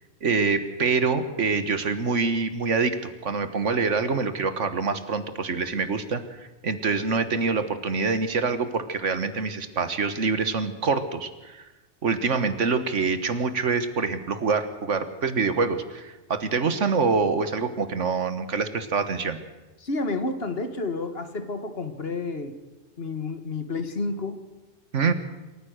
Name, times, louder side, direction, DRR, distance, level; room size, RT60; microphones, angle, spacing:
voice 1, 0.2-11.7 12.0-19.4 24.9-25.1, right 4 dB, 75° right, 11 dB, 1.8 m, -25 dB
voice 2, 19.8-22.6 23.0-24.4, left 3 dB, 55° left, 9 dB, 1.9 m, -30 dB
27.0 x 14.5 x 6.5 m, 1.1 s
omnidirectional pair, 1.3 m